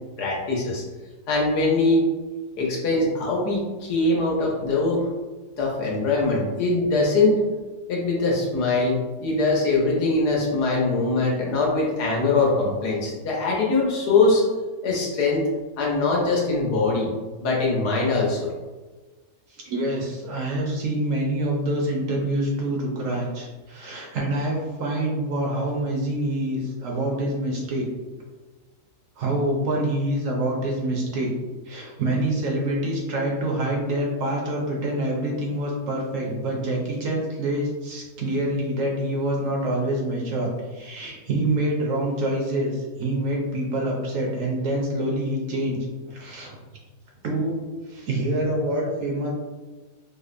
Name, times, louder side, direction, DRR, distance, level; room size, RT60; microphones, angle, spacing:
voice 1, 0.2-0.8 1.3-2.1 2.6-5.1 5.6-7.4 7.9-14.4 14.8-15.5 15.8-17.1 17.4-18.5, left 3 dB, 85° left, -3 dB, 1.4 m, -22 dB
voice 2, 19.5-27.9 29.2-31.3 31.7-45.8 46.1-46.6 47.2-47.6 47.8-49.3, right 1 dB, 65° right, -1 dB, 0.9 m, -26 dB
5.0 x 2.1 x 2.4 m, 1.3 s
omnidirectional pair, 1.7 m